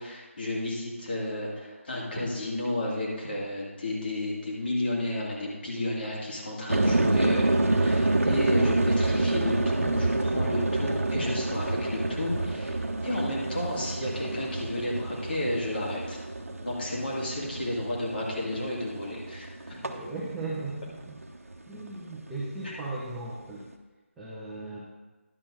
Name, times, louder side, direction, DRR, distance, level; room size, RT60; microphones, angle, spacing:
voice 1, 0.0-16.2 16.6-19.8 22.6-22.7, left 1 dB, 45° left, -3 dB, 2.3 m, -32 dB
sound 1, 6.7-21.2 21.5-22.1, right 2 dB, 75° right, 0.9 m, -28 dB
voice 2, 19.8-21.2 21.7-23.6 24.2-24.8, right 2 dB, 5° right, -10 dB, 0.7 m, -37 dB
11.0 x 4.4 x 6.2 m, 1.2 s
figure-of-eight pair, 160°, 8 cm